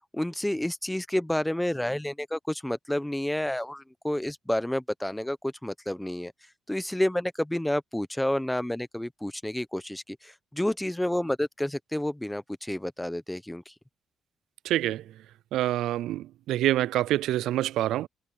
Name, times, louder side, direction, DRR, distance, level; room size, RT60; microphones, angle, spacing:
voice 1, 0.1-6.3 6.7-13.7, left 1 dB, 5° left, 1.0 m, -30 dB
voice 2, 14.6-15.0 15.5-18.1, right 14 dB, 85° right, 0.3 m, -26 dB
cardioid pair, 90°, 0 cm